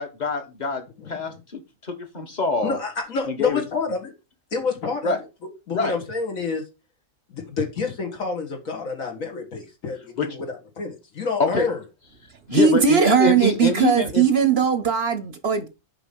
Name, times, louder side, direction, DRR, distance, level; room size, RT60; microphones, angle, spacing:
voice 1, 0.0-2.8 3.4-3.6 5.0-5.2 5.7-5.9 10.2-10.3 11.4-11.7 12.5-14.2, left 3 dB, 35° left, 1.4 m, -24 dB
voice 2, 1.0-1.4 2.6-4.1 4.5-5.1 5.7-6.6 7.3-10.5 10.8-11.8, left 4 dB, 70° left, 2.2 m, -28 dB
voice 3, 12.5-15.7, right 6 dB, 55° right, 0.9 m, -19 dB
6.0 x 5.3 x 5.3 m
omnidirectional pair, 1.4 m